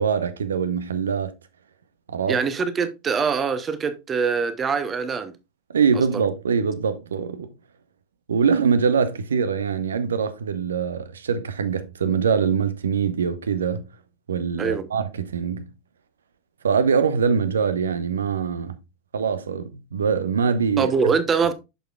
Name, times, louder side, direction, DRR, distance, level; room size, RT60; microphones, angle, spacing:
voice 1, 0.0-1.3 2.1-2.4 5.7-7.5 8.3-13.9 14.3-15.7 16.6-18.8 19.1-21.1, right 6 dB, 70° right, 0.8 m, -23 dB
voice 2, 2.3-5.3 5.9-6.2 14.6-14.9 20.8-21.5, right 5 dB, 25° right, 0.9 m, -23 dB
7.9 x 6.7 x 2.3 m
figure-of-eight pair, 85°, 0 cm